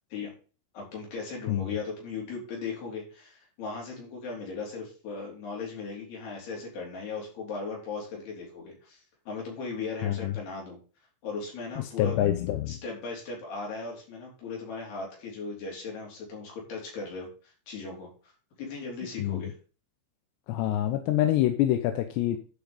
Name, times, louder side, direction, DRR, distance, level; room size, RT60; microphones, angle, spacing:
voice 1, 0.7-10.8 11.2-12.2 12.7-18.3 18.6-19.5, left 4 dB, 60° left, -2 dB, 5.3 m, -38 dB
voice 2, 10.0-10.3 11.8-12.8 19.2-19.4 20.5-22.4, left 13 dB, 80° left, 7 dB, 2.8 m, -26 dB
11.5 x 5.1 x 5.2 m, 0.38 s
omnidirectional pair, 5.3 m